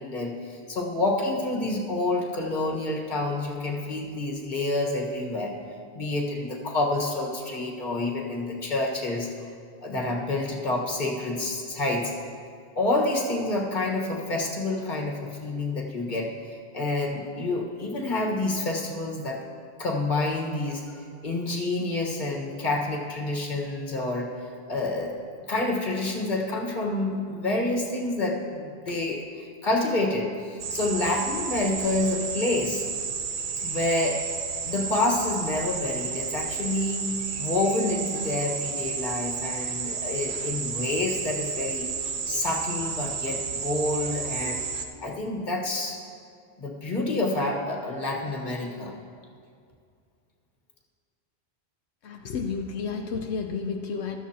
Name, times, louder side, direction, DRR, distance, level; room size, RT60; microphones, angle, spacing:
voice 1, 0.0-5.5 5.9-9.3 9.8-12.1 12.7-16.3 16.7-19.4 19.8-25.1 25.5-32.9 33.6-34.2 34.6-37.1 37.4-41.9 42.3-44.6 45.0-46.0 46.6-48.9, left 2 dB, 45° left, -1 dB, 1.6 m, -28 dB
sound 1, 30.6-44.9, right 5 dB, 55° right, 0.8 m, -32 dB
voice 2, 52.0-54.2, left 5 dB, 85° left, 3 dB, 1.0 m, -31 dB
15.5 x 12.5 x 2.9 m, 2.3 s
omnidirectional pair, 1.1 m